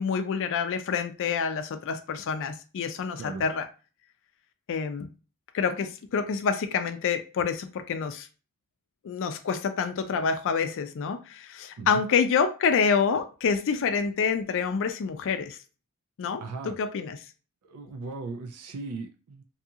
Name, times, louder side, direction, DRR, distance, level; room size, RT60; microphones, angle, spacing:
voice 1, 0.0-3.7 4.7-5.1 5.5-8.3 9.0-15.6 16.2-17.2, left 6 dB, 60° left, 8 dB, 0.4 m, -27 dB
voice 2, 16.4-16.8 17.6-19.4, right 3 dB, 80° right, 5 dB, 0.4 m, -37 dB
2.7 x 2.4 x 2.7 m, 0.34 s
head